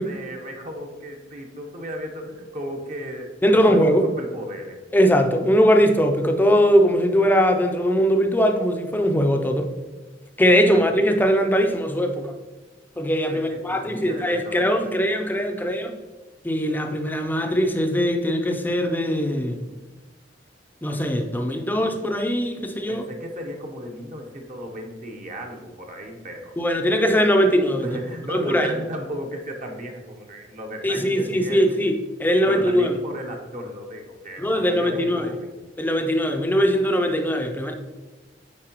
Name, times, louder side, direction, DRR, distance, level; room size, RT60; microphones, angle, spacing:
voice 1, 0.0-4.8 10.7-10.8 13.3-14.9 22.9-26.6 27.8-31.8 32.4-35.6, equal, 40° right, 2 dB, 0.9 m, -35 dB
voice 2, 3.4-4.0 4.9-9.7 10.4-12.3 13.0-16.0 16.4-19.6 20.8-23.0 26.6-27.9 28.3-28.7 30.8-33.0 34.4-35.3 35.8-37.7, equal, 10° left, 5 dB, 0.5 m, -20 dB
8.7 x 4.5 x 3.0 m, 1.2 s
head